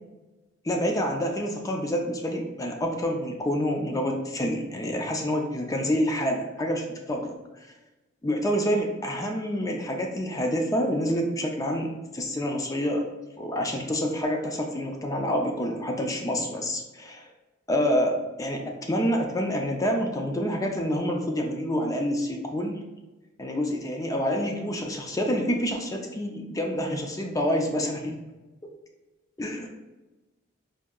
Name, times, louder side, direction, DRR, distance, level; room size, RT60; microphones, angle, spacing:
voice 1, 0.6-7.4 8.2-13.0 13.4-17.2 17.7-22.8 23.4-28.2 29.4-29.7, equal, 20° left, 2 dB, 0.4 m, -27 dB
4.6 x 2.6 x 2.3 m, 1.1 s
head